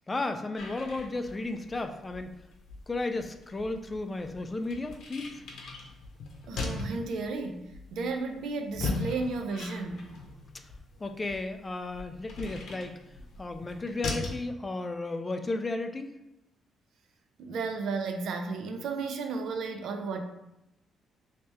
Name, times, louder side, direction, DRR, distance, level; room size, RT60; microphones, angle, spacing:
voice 1, 0.1-2.3 2.9-5.4 11.0-13.0 13.4-16.1, left 2 dB, 25° left, 6 dB, 0.3 m, -34 dB
sound 1, 0.6-14.4, left 3 dB, 75° left, 0.8 m, -40 dB
voice 2, 6.5-7.6 7.9-10.0 17.4-20.2, right 4 dB, 75° right, 5 dB, 0.5 m, -33 dB
3.3 x 2.8 x 3.3 m, 0.90 s
cardioid pair, 90°, 0 cm